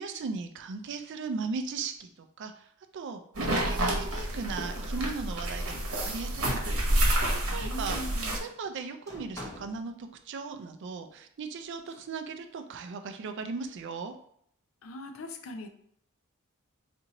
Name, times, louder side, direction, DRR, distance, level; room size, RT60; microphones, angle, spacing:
voice 1, 0.0-2.6 2.9-6.7 7.5-8.0 8.3-14.1, right 4 dB, 55° right, 8 dB, 0.4 m, -37 dB
sound 1, 3.3-8.4, right 1 dB, 85° right, 1.0 m, -29 dB
voice 2, 7.5-8.4 14.8-15.7, left 1 dB, 70° left, 7 dB, 0.5 m, -41 dB
sound 2, 8.4-9.9 11.6-12.1, left 1 dB, 15° left, 0.6 m, -47 dB
4.0 x 2.6 x 2.8 m, 0.67 s
head